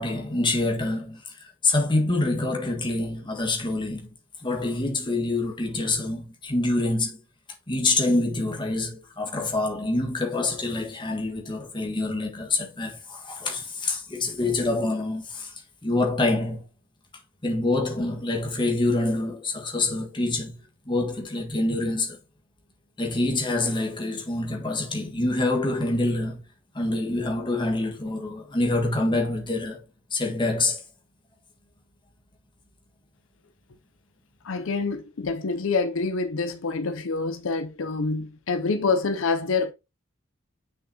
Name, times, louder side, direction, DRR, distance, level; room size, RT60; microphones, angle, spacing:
voice 1, 0.0-4.1 4.4-7.2 7.7-15.5 15.8-16.6 17.4-20.6 20.9-22.2 23.0-26.4 26.7-29.8 30.1-30.8, left 2 dB, 20° left, 1.6 m, -26 dB
voice 2, 34.4-39.7, left 4 dB, 65° left, 0.5 m, -26 dB
7.1 x 6.3 x 2.8 m
head